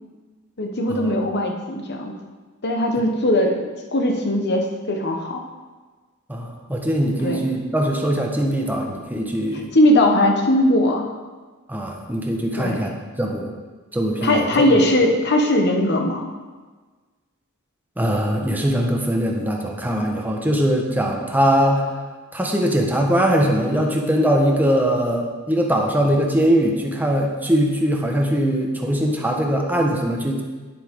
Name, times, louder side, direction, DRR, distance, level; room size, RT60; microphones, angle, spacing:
voice 1, 0.6-2.1 2.6-5.4 7.2-7.4 9.7-11.1 12.6-12.8 14.2-16.3, left 1 dB, 55° left, 2 dB, 1.2 m, -19 dB
voice 2, 6.3-9.7 11.7-13.5 13.9-14.8 18.0-21.9 22.3-30.4, equal, 10° right, 0 dB, 1.1 m, -21 dB
10.0 x 8.3 x 3.7 m, 1.4 s
head